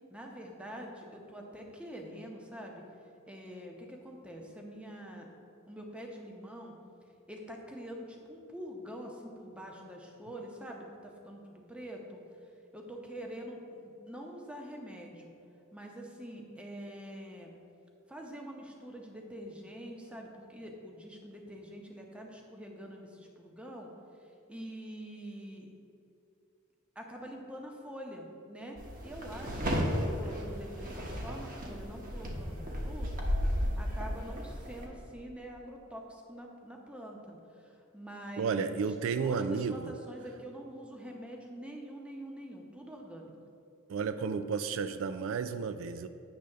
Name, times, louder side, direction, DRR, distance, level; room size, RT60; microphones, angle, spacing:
voice 1, 0.1-2.8 3.3-5.3 5.7-6.7 7.3-12.2 12.7-15.3 15.7-17.5 18.1-23.9 24.5-25.7 27.0-29.9 30.1-33.3 33.5-38.9 39.2-43.3, equal, 5° right, 0 dB, 0.8 m, -45 dB
sound 1, 28.8-34.9, equal, 40° right, 1.0 m, -34 dB
voice 2, 38.4-39.9 43.9-46.1, right 5 dB, 70° right, 11 dB, 0.3 m, -32 dB
8.7 x 3.4 x 6.5 m, 2.7 s
head